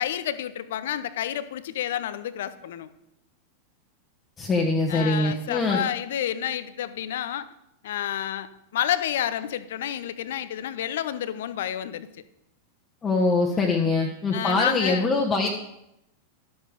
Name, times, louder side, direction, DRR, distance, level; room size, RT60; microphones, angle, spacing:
voice 1, 0.0-2.9 4.9-7.5 7.8-12.1 13.6-13.9 14.3-15.1, left 11 dB, 55° left, 14 dB, 0.7 m, -30 dB
voice 2, 4.4-5.8 13.0-15.5, left 3 dB, 20° left, -1 dB, 1.3 m, -23 dB
12.0 x 7.9 x 5.1 m, 0.85 s
figure-of-eight pair, 90°, 0 cm